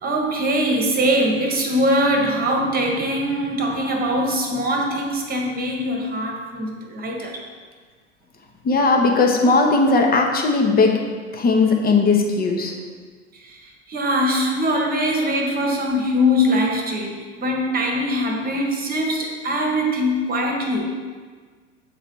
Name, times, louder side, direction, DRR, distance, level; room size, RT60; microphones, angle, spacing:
voice 1, 0.0-7.4 13.3-13.6 13.9-20.9, equal, 25° right, 1 dB, 1.4 m, -22 dB
voice 2, 8.6-11.0 11.3-12.7, left 3 dB, 25° left, 1 dB, 1.0 m, -17 dB
7.6 x 4.0 x 4.6 m, 1.5 s
figure-of-eight pair, 85°, 38 cm